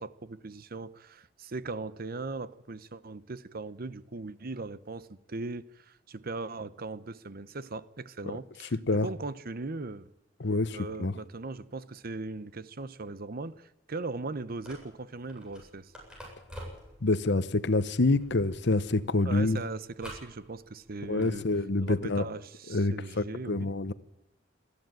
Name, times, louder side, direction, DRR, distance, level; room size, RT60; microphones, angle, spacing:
voice 1, 0.0-10.1 10.7-15.9 19.2-21.5 21.8-23.7, right 3 dB, 50° right, 0.8 m, -39 dB
voice 2, 8.7-9.1 10.4-11.1 17.0-19.6 21.1-22.3 22.7-23.9, left 2 dB, 65° left, 1.0 m, -27 dB
sound 1, 14.6-21.4, equal, 5° right, 7.7 m, -50 dB
20.5 x 14.0 x 9.1 m
head